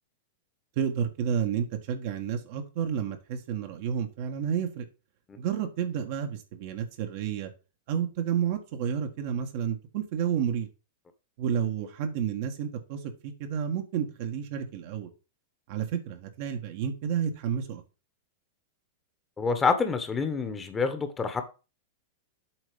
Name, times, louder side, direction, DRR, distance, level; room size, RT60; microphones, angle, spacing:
voice 1, 0.8-4.8 5.4-7.5 7.9-10.7 11.4-15.1 15.7-17.8, right 8 dB, 55° right, 1.6 m, -30 dB
voice 2, 19.4-21.4, left 5 dB, 20° left, 1.4 m, -27 dB
7.9 x 4.2 x 5.2 m
hypercardioid pair, 105°, 0 cm